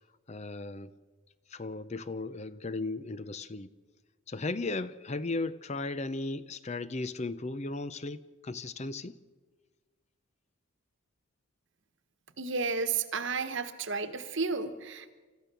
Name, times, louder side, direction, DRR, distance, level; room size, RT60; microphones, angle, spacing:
voice 1, 0.3-0.9 1.5-3.7 4.3-9.1, left 3 dB, 30° left, 14 dB, 0.6 m, -36 dB
voice 2, 12.4-15.1, right 4 dB, 55° right, 10 dB, 1.2 m, -32 dB
29.5 x 13.5 x 6.9 m, 1.4 s
head